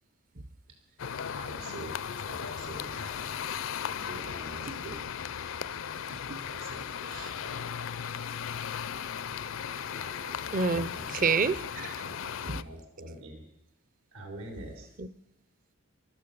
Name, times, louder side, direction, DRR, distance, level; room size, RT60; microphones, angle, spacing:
sound 1, 1.0-12.6, left 8 dB, 65° left, 0.5 m, -37 dB
voice 1, 1.3-2.0 2.3-3.3 4.0-5.1 6.5-7.6 9.9-10.1 10.9-11.1 12.0-13.4 14.1-14.9, right 1 dB, 85° right, 3 dB, 4.2 m, -45 dB
voice 2, 6.1-6.4 7.1-7.3 10.3-11.9 12.5-12.6 15.0-15.1, right 4 dB, 40° right, 16 dB, 0.6 m, -30 dB
15.0 x 12.0 x 6.9 m, 0.81 s
head